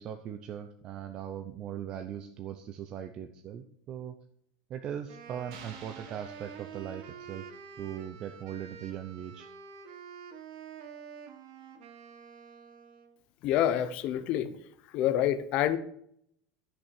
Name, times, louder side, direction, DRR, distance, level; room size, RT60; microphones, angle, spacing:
voice 1, 0.0-4.1 4.7-9.5, right 9 dB, 25° right, 7 dB, 0.6 m, -40 dB
Wind instrument woodwind instrument, 5.1-13.2, right 7 dB, 50° right, 1.7 m, -48 dB
sound 1, 5.5-7.7, right 6 dB, 65° right, 2.9 m, -52 dB
voice 2, 13.4-14.5 14.9-15.8, left 11 dB, 35° left, 11 dB, 0.9 m, -27 dB
13.0 x 6.1 x 6.4 m, 0.68 s
supercardioid pair, 180°, 3 cm